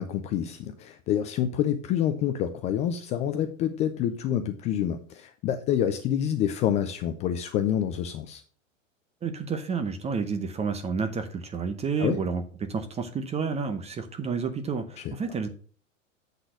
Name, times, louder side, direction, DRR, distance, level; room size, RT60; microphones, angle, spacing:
voice 1, 0.0-8.4 12.0-12.2 15.0-15.1, left 10 dB, 20° left, 0.3 m, -27 dB
voice 2, 9.2-15.5, right 5 dB, 15° right, 0.8 m, -30 dB
8.0 x 4.0 x 6.3 m
hypercardioid pair, 115°, 39 cm